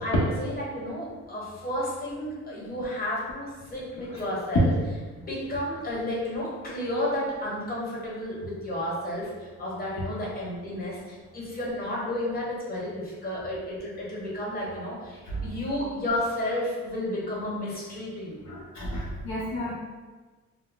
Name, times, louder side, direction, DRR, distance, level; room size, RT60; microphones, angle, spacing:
voice 1, 0.0-4.7 5.3-18.4, left 1 dB, 30° left, -6 dB, 1.1 m, -32 dB
voice 2, 18.5-19.7, equal, 65° left, -6 dB, 0.6 m, -30 dB
2.2 x 2.0 x 3.7 m, 1.3 s
cardioid pair, 90°, 30 cm